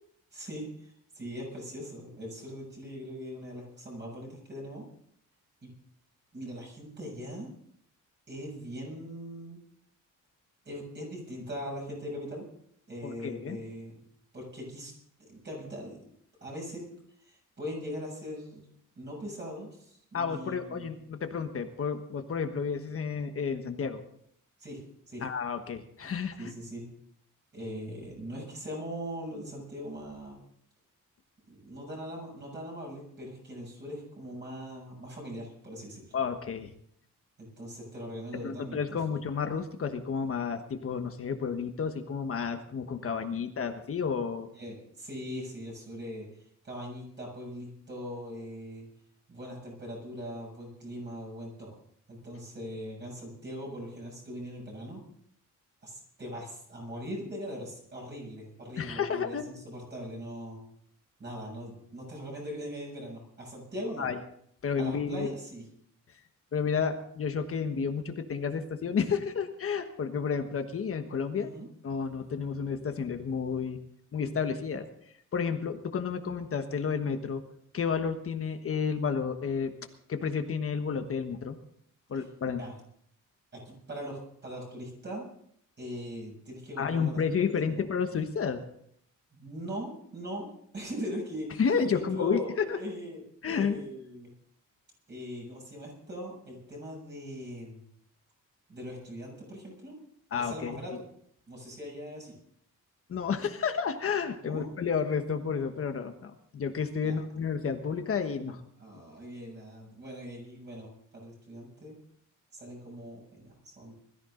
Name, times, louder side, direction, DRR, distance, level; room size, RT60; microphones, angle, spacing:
voice 1, 0.3-4.8 5.6-5.7 6.3-7.5 8.3-9.6 10.6-12.5 12.9-13.9 14.3-14.9 15.3-16.0 16.4-16.9 17.2-18.6 19.0-20.9 24.6-24.8 25.1-25.2 26.4-26.9 27.5-30.4 31.5-36.1 37.4-39.0 44.5-48.9 49.3-51.8 52.1-55.0 55.8-60.6 61.2-64.1 64.8-65.7 71.3-71.7 82.2-82.3 82.6-82.7 83.5-85.3 85.8-87.2 87.6-87.8 89.3-90.5 90.7-94.3 95.1-97.8 98.7-100.0 100.3-101.1 101.5-102.4 104.4-104.7 107.0-107.2 108.8-112.0 112.5-113.9, equal, 35° right, -1 dB, 7.3 m, -41 dB
voice 2, 13.0-13.6 20.1-24.0 25.2-26.5 36.1-36.7 38.4-44.5 58.8-59.4 64.0-64.2 64.6-65.3 66.5-71.5 71.8-73.8 74.1-74.8 75.3-77.4 77.7-79.7 80.1-81.6 82.1-82.6 86.8-88.6 91.6-92.4 92.7-92.8 93.4-93.8 100.3-101.0 103.1-108.6, left 6 dB, 45° left, 7 dB, 1.3 m, -31 dB
21.5 x 14.0 x 3.9 m, 0.67 s
wide cardioid pair, 165°, 32 cm